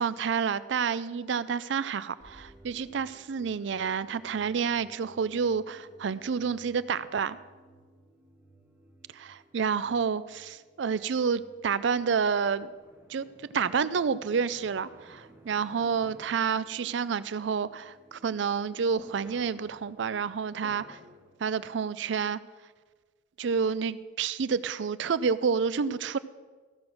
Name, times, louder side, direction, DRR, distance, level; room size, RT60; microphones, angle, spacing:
voice 1, 0.0-7.4 9.1-12.7 13.1-13.3 13.5-21.0 21.4-22.4 23.4-26.2, right 6 dB, 70° right, 16 dB, 0.4 m, -29 dB
sound 1, 2.2-22.1, right 1 dB, 15° right, 3.8 m, -56 dB
15.5 x 6.1 x 6.3 m, 1.4 s
head